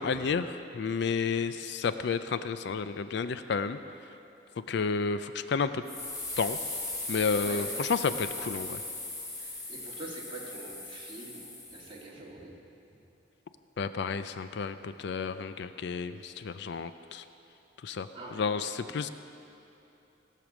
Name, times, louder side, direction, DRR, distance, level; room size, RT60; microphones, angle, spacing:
voice 1, 0.0-3.8 4.7-5.8 6.4-6.6 7.1-8.8 13.8-17.2 17.8-19.1, left 5 dB, 65° left, 11 dB, 0.4 m, -31 dB
sound 1, 5.9-12.0, left 2 dB, 20° left, 1.8 m, -38 dB
voice 2, 9.4-12.5 18.1-18.9, right 2 dB, 30° right, -4 dB, 2.1 m, -45 dB
17.5 x 6.7 x 6.1 m, 2.9 s
head